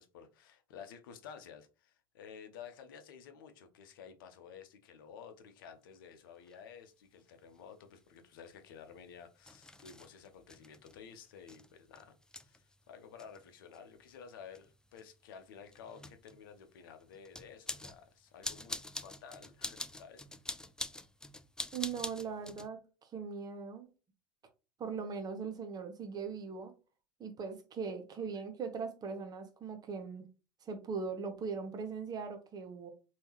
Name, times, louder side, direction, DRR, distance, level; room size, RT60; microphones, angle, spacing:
voice 1, 0.0-20.3, left 7 dB, 75° left, 0.7 m, -53 dB
sound 1, 5.6-5.7 6.4-6.6 7.6-22.7, left 2 dB, 5° left, 0.3 m, -47 dB
voice 2, 21.7-23.9 24.8-26.7 27.2-30.3 30.7-32.9, right 5 dB, 35° right, 1.0 m, -40 dB
3.5 x 2.8 x 2.9 m
hypercardioid pair, 80°, 11 cm